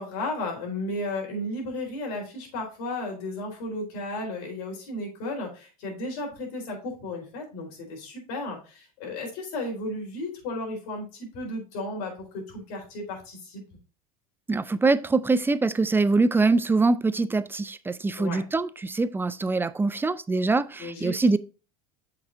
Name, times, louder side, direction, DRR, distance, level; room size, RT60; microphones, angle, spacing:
voice 1, 0.0-13.6 18.2-18.4 20.8-21.3, left 2 dB, 70° left, 4.0 m, -34 dB
voice 2, 14.5-21.4, right 3 dB, 10° right, 0.4 m, -24 dB
7.7 x 5.9 x 2.6 m
hypercardioid pair, 95°, 20 cm